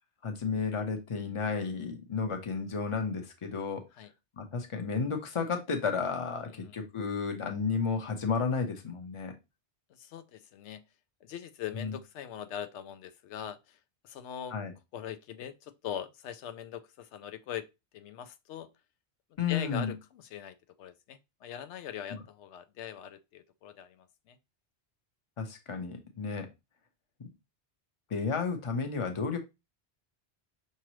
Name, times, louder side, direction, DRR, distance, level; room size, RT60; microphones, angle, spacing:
voice 1, 0.2-3.8 4.4-9.3 11.8-11.9 14.5-14.7 19.4-19.9 22.1-22.2 25.4-26.5 27.2-27.3 28.1-29.4, left 5 dB, 30° left, 0.8 m, -32 dB
voice 2, 6.4-6.7 9.9-10.8 11.2-13.8 14.0-14.5 14.9-17.7 17.9-18.7 19.5-24.4, left 9 dB, 90° left, 0.9 m, -42 dB
5.9 x 2.8 x 3.0 m
omnidirectional pair, 1.1 m